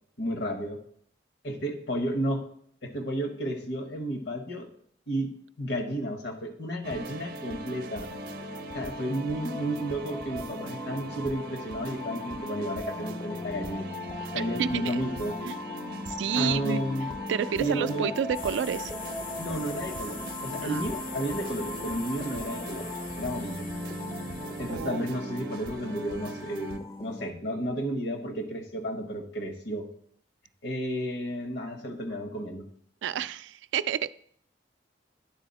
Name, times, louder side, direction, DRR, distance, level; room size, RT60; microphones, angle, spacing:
voice 1, 0.2-0.8 1.4-2.5 2.8-4.7 5.1-5.3 5.6-8.1 8.7-13.9 14.3-15.3 16.3-17.1 17.6-18.1 19.4-22.9 23.2-23.7 24.6-29.9 30.6-32.7, equal, 70° left, 6 dB, 1.1 m, -32 dB
sound 1, 6.8-26.8, right 3 dB, 55° right, 0.6 m, -41 dB
sound 2, 8.1-27.3, left 2 dB, 20° left, 0.4 m, -39 dB
voice 2, 14.6-15.0 15.4-15.6 16.1-16.8 17.3-18.9 20.6-20.8 24.7-25.0 33.0-34.1, right 8 dB, 80° right, 15 dB, 0.3 m, -29 dB
sound 3, 18.3-24.8, left 5 dB, 55° left, 0.8 m, -42 dB
10.0 x 4.1 x 4.1 m, 0.63 s
head